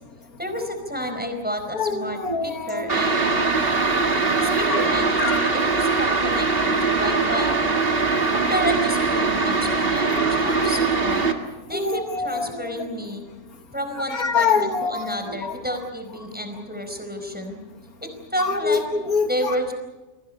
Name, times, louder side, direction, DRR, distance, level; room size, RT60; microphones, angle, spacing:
voice 1, 0.4-3.3 4.4-5.2 5.5-7.6 8.3-11.2 11.7-13.2 13.7-17.6 18.0-18.8 19.3-19.7, equal, 5° right, 4 dB, 4.5 m, -30 dB
voice 2, 1.7-3.5 4.0-4.8 5.2-5.5 9.9-10.8 11.7-13.1 14.0-15.6 18.4-19.6, left 5 dB, 85° left, 6 dB, 2.1 m, -27 dB
sound 1, 2.9-11.3, right 4 dB, 40° right, 2.1 m, -21 dB
29.5 x 24.5 x 5.5 m, 1.1 s
omnidirectional pair, 1.5 m